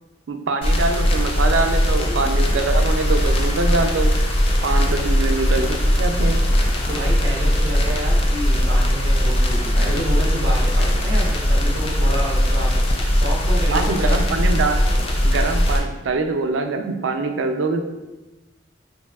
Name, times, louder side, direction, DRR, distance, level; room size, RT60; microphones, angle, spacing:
voice 1, 0.3-4.1 4.6-6.4 13.7-14.8 15.2-17.8, right 3 dB, 90° right, 6 dB, 0.4 m, -24 dB
sound 1, 0.6-15.8, equal, 30° left, 0.4 m, -19 dB
Toilet flush, 2.1-15.9, left 2 dB, 75° left, 0.9 m, -44 dB
voice 2, 6.9-12.7 13.1-14.2, equal, 60° right, -3 dB, 1.0 m, -29 dB
5.3 x 2.6 x 2.3 m, 1.1 s
head